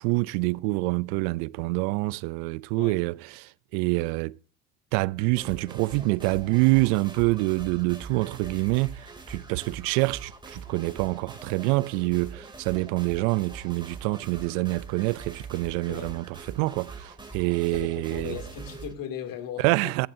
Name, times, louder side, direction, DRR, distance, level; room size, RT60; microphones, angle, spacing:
voice 1, 0.0-4.4 4.9-18.4 19.6-20.1, right 23 dB, 70° right, 0.6 m, -26 dB
sound 1, 5.4-18.9, right 4 dB, 10° right, 2.8 m, -43 dB
voice 2, 17.7-19.9, left 9 dB, 55° left, 2.9 m, -37 dB
17.0 x 15.5 x 2.7 m
supercardioid pair, 90°, 39 cm